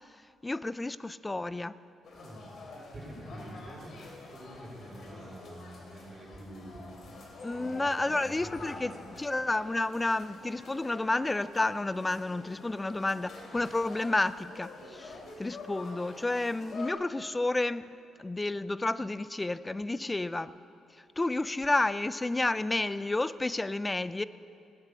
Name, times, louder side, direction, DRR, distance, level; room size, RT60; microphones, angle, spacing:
voice 1, 0.4-1.7 7.4-17.9 18.2-20.5 21.2-24.2, left 2 dB, 15° left, 0.4 m, -31 dB
sound 1, 2.0-16.9, left 3 dB, 55° left, 2.7 m, -47 dB
voice 2, 2.1-2.4 2.9-4.0 4.3-7.2 7.5-8.9, equal, 25° right, 4.4 m, -46 dB
16.0 x 9.8 x 6.9 m
cardioid pair, 90°, 0 cm